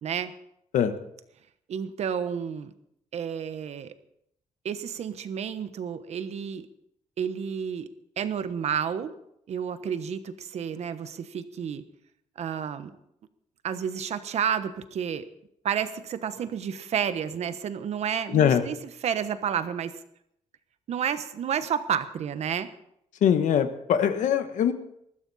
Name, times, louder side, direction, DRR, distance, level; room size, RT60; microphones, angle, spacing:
voice 1, 0.0-0.3 1.7-2.7 3.1-3.9 4.6-6.7 7.2-7.9 8.2-9.1 9.5-11.9 12.4-12.9 13.6-15.2 15.6-19.9 20.9-22.7, right 8 dB, 60° right, 11 dB, 1.2 m, -30 dB
voice 2, 23.2-24.7, left 9 dB, 80° left, 9 dB, 1.3 m, -22 dB
21.0 x 13.5 x 4.2 m, 0.74 s
cardioid pair, 145°, 13 cm